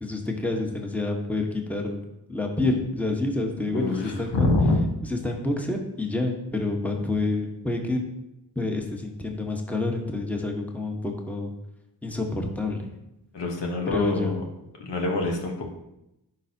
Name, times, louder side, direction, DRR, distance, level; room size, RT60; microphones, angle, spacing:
voice 1, 0.0-4.5 5.1-8.0 8.5-11.5 12.0-12.9 13.9-14.4, left 2 dB, 5° left, 2 dB, 1.2 m, -28 dB
voice 2, 3.6-4.8 13.3-14.4 14.8-15.6, left 2 dB, 80° left, 1 dB, 1.2 m, -25 dB
11.0 x 4.9 x 2.8 m, 0.89 s
cardioid pair, 55°, 42 cm